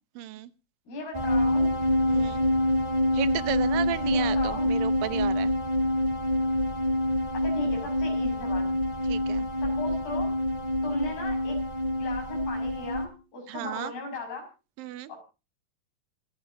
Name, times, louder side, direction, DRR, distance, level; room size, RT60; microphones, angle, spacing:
voice 1, 0.2-0.5 2.1-2.5 3.1-5.5 9.1-9.5 13.5-13.9 14.8-15.1, right 13 dB, 80° right, 15 dB, 2.7 m, -33 dB
voice 2, 0.9-1.7 4.0-4.7 7.3-8.7 9.6-10.3 10.8-11.6 12.0-14.5 15.1-15.2, left 3 dB, 75° left, 3 dB, 8.1 m, -37 dB
sound 1, 1.1-13.1, left 1 dB, 10° right, 2.9 m, -26 dB
26.5 x 9.3 x 2.8 m, 0.32 s
omnidirectional pair, 4.1 m